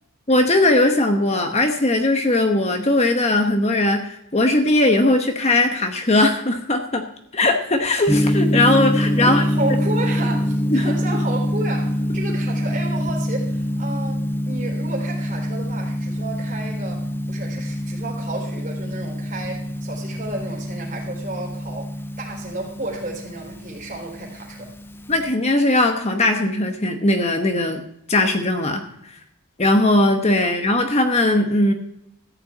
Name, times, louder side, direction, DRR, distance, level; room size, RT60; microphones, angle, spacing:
voice 1, 0.3-7.0 7.3-9.4 10.7-10.9 25.1-27.8 28.1-28.8 29.1-29.2 29.6-31.7, left 2 dB, 30° left, 5 dB, 1.0 m, -19 dB
Gong, 8.1-25.3, equal, 10° left, 0.4 m, -25 dB
voice 2, 9.2-24.7, right 2 dB, 35° right, 0 dB, 4.1 m, -32 dB
14.0 x 5.7 x 8.6 m, 0.78 s
head